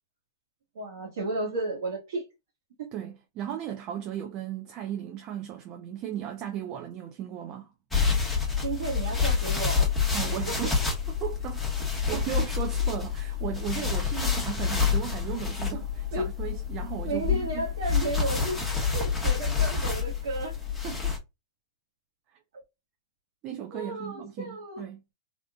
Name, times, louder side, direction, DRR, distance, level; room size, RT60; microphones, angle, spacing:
voice 1, 0.7-2.2 8.6-10.2 10.4-10.6 16.1-16.2 17.0-18.6 18.9-20.5 23.7-24.8, right 2 dB, 70° right, 1.3 m, -33 dB
voice 2, 2.9-7.7 10.1-11.0 11.2-11.7 12.1-17.7 20.8-21.2 22.3-22.4 23.4-25.0, right 10 dB, 35° right, 0.5 m, -36 dB
sound 1, 7.9-21.2, left 6 dB, 5° left, 1.1 m, -28 dB
3.6 x 2.4 x 2.3 m
hypercardioid pair, 130°, 2 cm